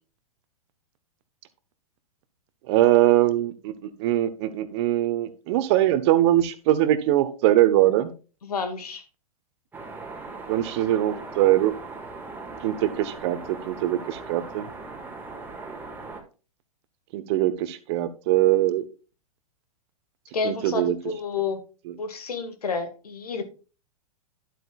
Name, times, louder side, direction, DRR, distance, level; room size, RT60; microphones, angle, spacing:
voice 1, 2.7-8.1 10.5-11.7 12.6-13.4 13.6-14.7 17.1-18.8 20.4-20.9 21.9-22.0, right 14 dB, 45° right, 13 dB, 1.1 m, -22 dB
voice 2, 8.4-9.0 20.3-21.6 22.0-23.4, left 5 dB, 75° left, 7 dB, 2.0 m, -30 dB
sound 1, 9.7-16.2, right 3 dB, 10° right, 1.9 m, -39 dB
11.5 x 8.1 x 2.4 m, 0.33 s
figure-of-eight pair, 110°, 20 cm